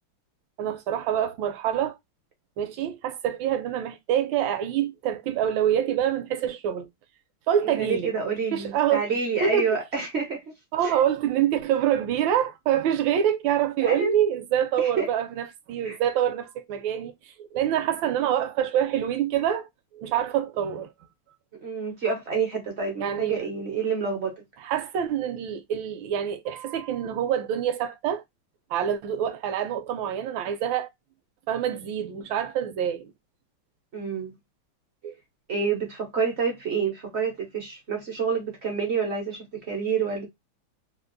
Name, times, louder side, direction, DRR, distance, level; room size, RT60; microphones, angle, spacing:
voice 1, 0.6-2.0 2.6-6.9 7.5-8.1 8.5-9.0 9.4-9.7 10.7-19.7 19.9-20.9 23.0-23.5 24.6-28.2 28.7-30.9 31.5-33.1 35.0-35.1, right 9 dB, 75° right, 1.2 m, -26 dB
voice 2, 7.6-10.4 10.8-11.0 13.8-14.1 14.8-15.1 15.8-16.0 21.6-24.4 33.9-34.3 35.5-40.2, right 5 dB, 55° right, 0.7 m, -28 dB
3.8 x 2.5 x 2.5 m
omnidirectional pair, 2.3 m